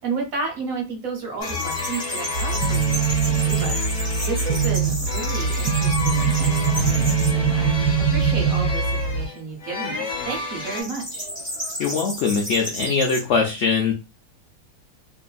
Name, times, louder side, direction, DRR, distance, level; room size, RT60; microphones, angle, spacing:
voice 1, 0.0-3.7 4.2-7.8 8.1-11.3, right 4 dB, 60° right, 1 dB, 1.2 m, -32 dB
sound 1, 1.4-10.8, left 4 dB, 30° left, 1.1 m, -31 dB
sound 2, 1.4-7.3 7.9-8.4 10.6-13.2, equal, 10° right, 1.2 m, -32 dB
sound 3, 2.4-9.3, right 6 dB, 85° right, 1.4 m, -22 dB
voice 2, 11.8-13.9, left 5 dB, 85° left, 1 dB, 0.6 m, -22 dB
2.8 x 2.5 x 2.3 m, 0.29 s
omnidirectional pair, 1.8 m